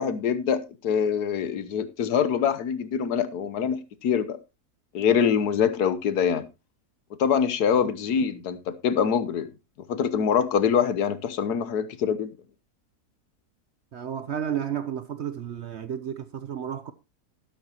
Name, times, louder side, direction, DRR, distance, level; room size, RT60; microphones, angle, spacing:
voice 1, 0.0-4.4 4.9-6.4 7.2-9.5 9.9-12.3, left 7 dB, 75° left, 1.4 m, -24 dB
voice 2, 13.9-16.9, right 9 dB, 55° right, 0.8 m, -32 dB
12.0 x 12.0 x 2.9 m
omnidirectional pair, 1.7 m